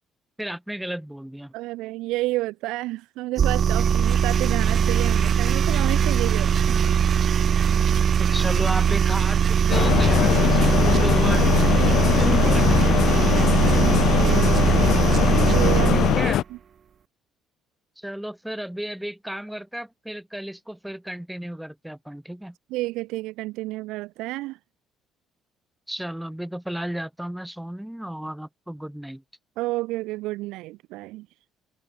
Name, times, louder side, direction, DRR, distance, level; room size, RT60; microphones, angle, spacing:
voice 1, 0.4-1.5 8.2-11.5 12.2-12.7 15.9-16.4 18.0-22.5 25.9-29.2, right 1 dB, 5° right, 2.4 m, -33 dB
voice 2, 1.5-7.0 13.8-15.1 15.5-16.3 22.7-24.6 29.6-31.3, right 19 dB, 85° right, 1.2 m, -30 dB
sound 1, 3.4-16.3, right 8 dB, 50° right, 0.4 m, -20 dB
sound 2, 9.7-16.4, left 13 dB, 70° left, 0.7 m, -21 dB
cardioid pair, 90°, 0 cm